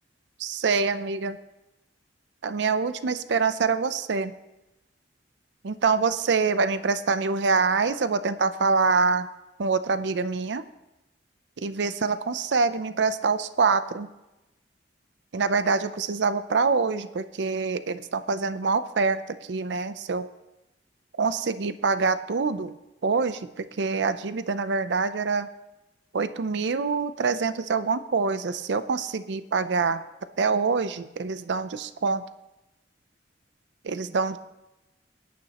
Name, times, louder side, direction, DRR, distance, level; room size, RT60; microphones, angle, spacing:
voice 1, 0.4-1.4 2.4-4.3 5.6-9.3 9.6-10.6 11.6-14.1 15.3-20.3 21.2-22.7 23.0-25.5 26.1-30.0 30.4-32.2 33.8-34.4, right 4 dB, 75° right, 12 dB, 0.5 m, -25 dB
20.5 x 9.3 x 2.9 m, 0.99 s
head